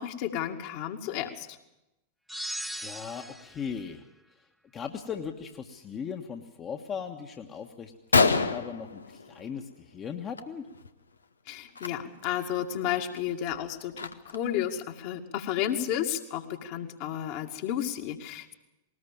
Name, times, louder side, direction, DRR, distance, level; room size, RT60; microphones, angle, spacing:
voice 1, 0.0-1.5 11.5-18.5, left 10 dB, 50° left, 4 dB, 2.2 m, -32 dB
sound 1, 2.3-3.7, right 1 dB, ahead, 0.9 m, -38 dB
voice 2, 2.7-4.0 4.7-10.7, left 7 dB, 25° left, 3 dB, 1.5 m, -38 dB
Gunshot gunfire, 7.4-7.5 7.8-7.9 8.1-9.7 10.1-10.4 10.7-10.9 11.7-11.9 12.4-12.5 12.9-14.5, left 4 dB, 75° left, 1.0 m, -27 dB
20.0 x 19.5 x 7.3 m, 0.92 s
figure-of-eight pair, 90°, 0 cm